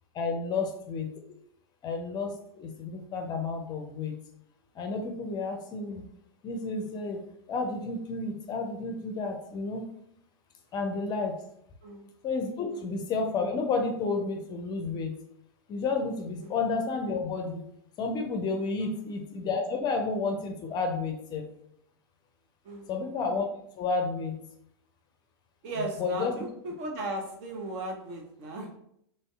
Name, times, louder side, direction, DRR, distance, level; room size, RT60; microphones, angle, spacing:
voice 1, 0.1-1.1 1.8-4.1 4.7-6.0 6.4-7.2 7.5-9.8 10.7-11.5 12.2-15.1 15.7-17.6 18.0-21.4 22.9-23.5 23.8-24.4 25.8-26.3, left 4 dB, 30° left, 4 dB, 0.5 m, -31 dB
voice 2, 25.6-28.8, right 2 dB, 50° right, 2 dB, 0.7 m, -37 dB
3.2 x 2.7 x 2.3 m, 0.72 s
hypercardioid pair, 100°, 14 cm